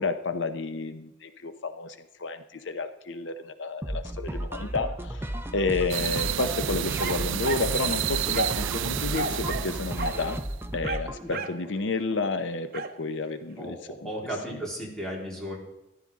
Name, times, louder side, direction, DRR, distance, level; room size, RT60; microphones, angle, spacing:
voice 1, 0.0-10.4 10.7-13.8 14.0-14.1, left 3 dB, 75° left, 10 dB, 0.8 m, -31 dB
sound 1, 3.8-11.2, right 1 dB, 15° right, 0.6 m, -34 dB
sound 2, 5.9-10.5, right 11 dB, 85° right, 0.4 m, -31 dB
sound 3, 7.0-7.7 8.3-8.7 9.1-9.7 10.0-10.2 10.8-11.6 12.7-13.0, right 3 dB, 50° right, 0.9 m, -32 dB
voice 2, 13.6-15.5, equal, 5° left, -4 dB, 3.6 m, -35 dB
14.0 x 12.5 x 3.7 m, 0.95 s
head